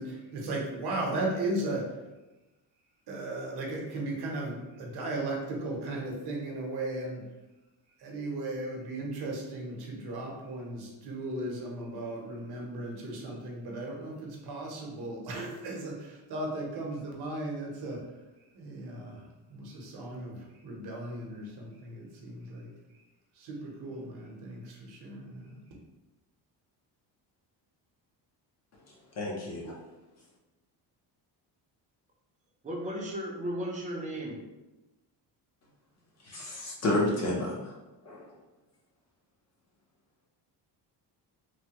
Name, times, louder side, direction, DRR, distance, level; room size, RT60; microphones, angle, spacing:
voice 1, 0.0-2.0 3.1-7.3 8.0-18.1 18.5-22.7 23.3-25.6, right 2 dB, 60° right, -1 dB, 0.7 m, -36 dB
voice 2, 29.2-29.7 36.2-37.7 38.1-38.3, left 1 dB, 40° left, -3 dB, 0.6 m, -30 dB
voice 3, 32.6-34.4, equal, 20° right, -2 dB, 0.5 m, -35 dB
3.2 x 2.1 x 2.8 m, 1.0 s
cardioid pair, 155°, 43 cm